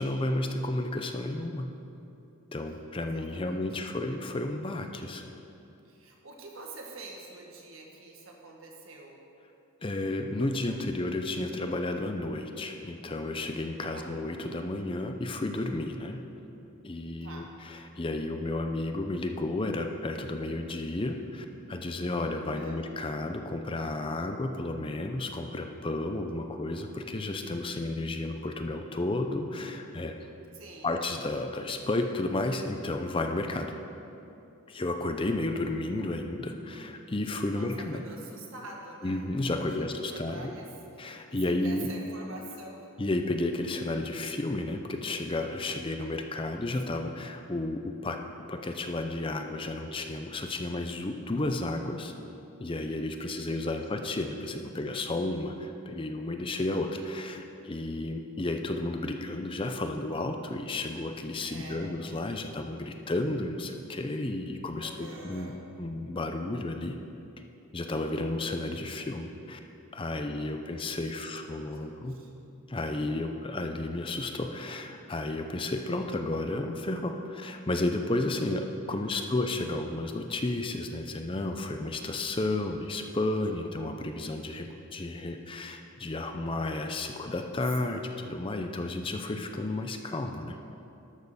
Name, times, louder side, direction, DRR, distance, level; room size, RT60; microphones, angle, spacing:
voice 1, 0.0-1.7 2.5-5.2 9.8-16.2 16.8-30.2 30.8-33.7 34.7-38.0 39.0-40.5 41.0-41.9 43.0-48.2 48.5-52.1 52.6-65.5 65.8-67.0 67.7-69.6 69.9-72.2 72.7-90.6, left 2 dB, 25° left, 5 dB, 0.5 m, -32 dB
voice 2, 3.0-3.7 5.8-9.2 13.9-14.2 17.2-17.6 22.5-22.9 30.5-30.9 37.5-39.3 39.6-40.7 41.3-43.0 46.5-46.6 46.9-47.1 53.2-53.4 54.2-54.3 61.5-61.9 64.8-65.6 70.5-72.3 78.9-79.5 87.9-88.1, right 2 dB, 65° right, 0 dB, 1.7 m, -47 dB
12.0 x 6.4 x 6.7 m, 2.8 s
head